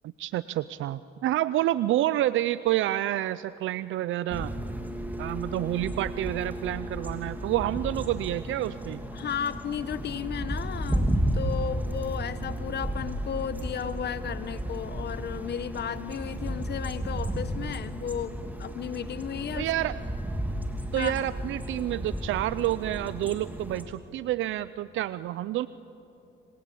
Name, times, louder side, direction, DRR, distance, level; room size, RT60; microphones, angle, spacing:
voice 1, 0.2-4.5 5.2-9.0 19.5-20.0 20.9-25.7, right 14 dB, 80° right, 16 dB, 0.5 m, -28 dB
sound 1, 4.3-23.8, equal, 10° right, 2.9 m, -33 dB
voice 2, 9.1-19.7 21.0-21.1, left 8 dB, 55° left, 13 dB, 1.1 m, -34 dB
27.0 x 26.0 x 8.6 m, 2.9 s
cardioid pair, 90°, 20 cm